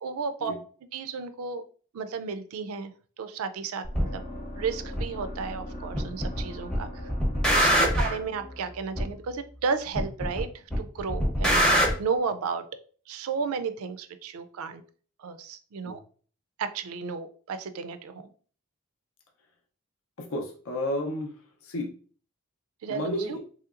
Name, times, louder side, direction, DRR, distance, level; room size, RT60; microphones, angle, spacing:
voice 1, 0.0-0.5 0.9-1.6 1.9-2.9 3.2-4.2 4.5-7.1 7.5-10.5 10.8-12.7 13.1-14.8 15.2-16.0 16.6-18.2 22.8-23.4, right 5 dB, 80° right, 10 dB, 0.4 m, -33 dB
sound 1, 3.8-9.9, left 1 dB, 45° left, 0.8 m, -40 dB
sound 2, 3.9-4.1 5.0-5.1 6.0-6.4 6.7-8.2 9.0-9.1 10.0-10.4 10.7-11.9, equal, 5° left, 0.6 m, -23 dB
voice 2, 20.2-21.3 21.6-21.9 22.9-23.4, left 1 dB, 75° left, 2 dB, 0.6 m, -32 dB
3.0 x 2.8 x 2.4 m, 0.42 s
head